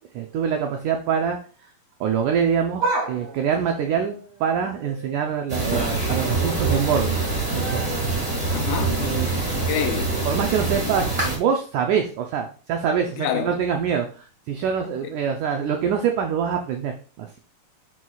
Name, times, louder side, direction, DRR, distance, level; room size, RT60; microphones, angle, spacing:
voice 1, 0.1-1.4 2.0-7.2 7.5-8.0 8.6-9.4 10.2-17.3, right 7 dB, 85° right, 1.7 m, -25 dB
sound 1, 2.8-5.4 5.8-6.2 6.5-10.5 10.8-10.9 11.9-12.0, right 3 dB, 60° right, 5.0 m, -34 dB
sound 2, 5.5-11.4, right 3 dB, 40° right, 0.5 m, -25 dB
voice 2, 8.5-9.0 9.6-10.2 13.2-13.5 15.0-15.1, left 9 dB, 85° left, 2.6 m, -27 dB
9.8 x 4.7 x 2.3 m
omnidirectional pair, 4.3 m